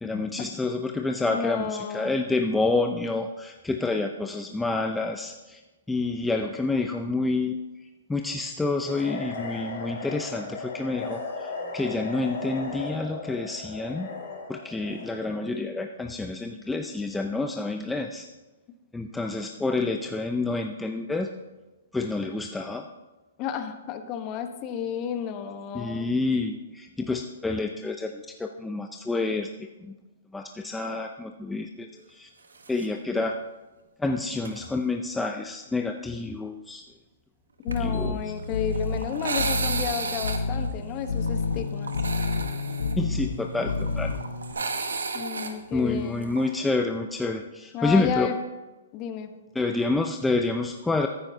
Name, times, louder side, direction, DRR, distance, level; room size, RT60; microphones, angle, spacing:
voice 1, 0.0-5.6 5.9-7.6 8.1-14.1 14.5-18.3 18.9-21.3 21.9-22.8 25.7-29.5 29.8-29.9 30.3-32.3 32.7-33.3 34.0-36.8 37.8-38.2 43.0-44.1 45.7-48.3 49.5-51.1, left 3 dB, 5° left, 4 dB, 0.5 m, -28 dB
voice 2, 1.3-2.1 23.4-26.1 37.6-41.9 45.1-46.3 47.7-48.4 48.9-49.3, left 8 dB, 35° left, 8 dB, 1.0 m, -32 dB
sound 1, 8.8-15.1, left 4 dB, 50° left, 3.5 m, -36 dB
sound 2, 32.5-32.9 33.2-33.3 34.4-34.7 37.7-46.5, right 4 dB, 90° right, 1.1 m, -34 dB
sound 3, 37.7-44.5, left 3 dB, 85° left, 0.9 m, -29 dB
14.5 x 9.7 x 2.8 m, 1.1 s
hypercardioid pair, 135°, 0 cm